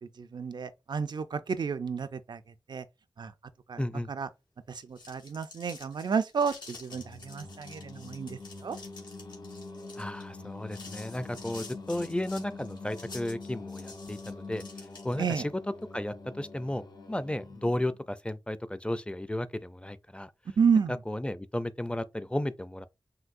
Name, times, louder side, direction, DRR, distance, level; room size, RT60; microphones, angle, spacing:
voice 1, 0.2-2.4 2.7-2.8 3.2-3.3 3.7-4.3 4.7-8.8 15.2-15.5 20.6-20.9, right 6 dB, 75° right, 0.5 m, -31 dB
voice 2, 3.8-4.1 10.0-14.6 15.0-15.5 15.9-16.8 17.1-20.3 20.9-22.9, left 1 dB, 15° left, 0.5 m, -34 dB
sound 1, 4.8-15.3, left 3 dB, 85° left, 1.9 m, -49 dB
Singing, 6.9-18.0, left 3 dB, 70° left, 0.8 m, -45 dB
5.9 x 2.7 x 2.5 m
wide cardioid pair, 55°, 7 cm